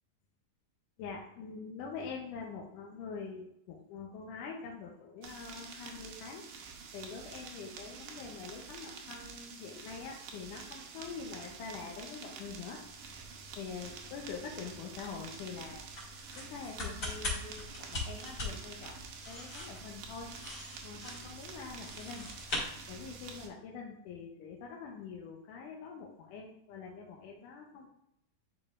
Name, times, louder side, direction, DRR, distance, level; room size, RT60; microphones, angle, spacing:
voice 1, 1.0-6.5 6.9-12.8 13.6-15.8 16.4-20.3 20.8-22.3 22.9-27.9, left 5 dB, 75° left, -1 dB, 2.1 m, -45 dB
sound 1, 5.2-23.5, right 6 dB, 80° right, 2.7 m, -48 dB
sound 2, 12.7-23.4, left 2 dB, 35° left, 2.4 m, -43 dB
10.5 x 4.8 x 2.4 m, 0.78 s
omnidirectional pair, 4.1 m